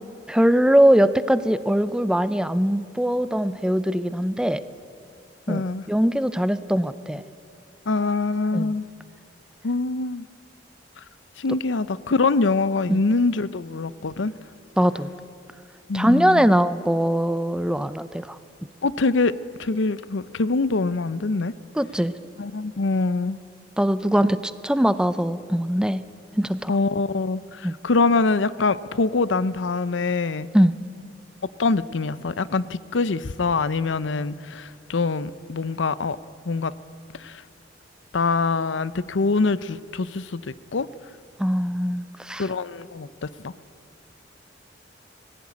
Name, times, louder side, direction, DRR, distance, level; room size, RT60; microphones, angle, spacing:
voice 1, 0.3-4.6 5.5-5.6 5.9-7.2 8.5-8.7 12.9-13.0 14.8-15.1 15.9-18.4 21.8-22.1 23.8-26.0 26.4-26.7 27.6-27.7 30.5-30.7 41.4-42.4, equal, 5° right, 14 dB, 0.5 m, -21 dB
voice 2, 5.5-5.9 7.9-8.8 9.6-10.3 11.4-14.3 15.9-16.5 18.8-19.3 19.6-21.5 22.4-23.4 26.7-30.5 31.6-36.2 36.4-36.7 37.2-37.4 38.1-40.9 42.4-43.5, left 3 dB, 90° left, 17 dB, 0.7 m, -24 dB
20.5 x 16.0 x 9.6 m, 2.5 s
head